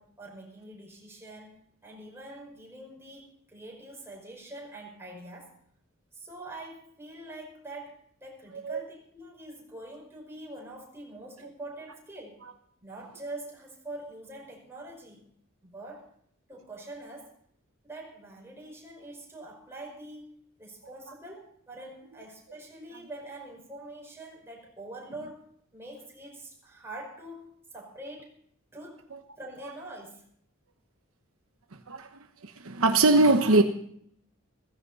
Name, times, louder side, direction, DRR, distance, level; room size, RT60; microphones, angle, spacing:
voice 1, 0.0-1.5 1.8-5.5 6.1-12.4 12.8-15.3 15.6-16.0 16.5-17.3 17.8-25.4 25.7-27.5 27.7-28.4 28.7-29.0 29.4-30.2, right 2 dB, 10° right, -2 dB, 5.3 m, -44 dB
voice 2, 32.4-33.6, right 2 dB, 70° right, 6 dB, 1.0 m, -21 dB
16.5 x 15.5 x 4.1 m, 0.66 s
head